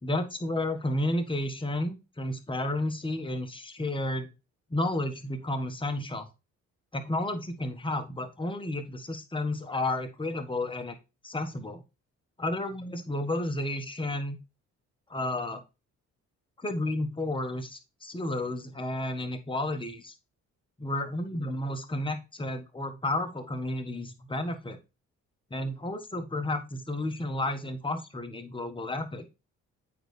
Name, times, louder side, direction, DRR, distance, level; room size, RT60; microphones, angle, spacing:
voice 1, 0.0-4.3 4.7-6.3 6.9-11.0 11.2-11.8 12.4-14.4 15.1-15.6 16.6-20.1 20.8-24.8 25.5-29.2, left 1 dB, 15° left, 6 dB, 1.4 m, -32 dB
8.8 x 4.1 x 3.2 m, 0.28 s
cardioid pair, 90°, 30 cm